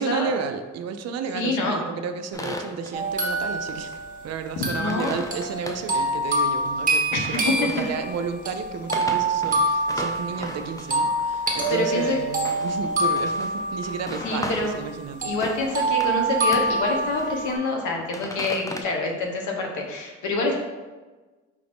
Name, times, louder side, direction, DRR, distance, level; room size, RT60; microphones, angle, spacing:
voice 1, 0.0-4.0 4.2-15.3, right 6 dB, 60° right, 8 dB, 0.5 m, -32 dB
voice 2, 1.3-1.8 4.6-5.2 7.1-7.4 11.7-12.2 14.2-14.8 15.2-20.6, left 2 dB, 75° left, 1 dB, 0.9 m, -26 dB
sound 1, 2.3-3.0 3.7-4.0 4.3-5.9 7.1-8.2 8.8-14.9 15.3-16.2 16.5-16.8 17.1-17.6 18.0-18.8, left 1 dB, 10° left, 0.3 m, -37 dB
sound 2, 2.9-14.9 15.2-17.6, right 2 dB, 25° right, 1.0 m, -26 dB
4.9 x 2.5 x 3.5 m, 1.3 s
cardioid pair, 90°, 30 cm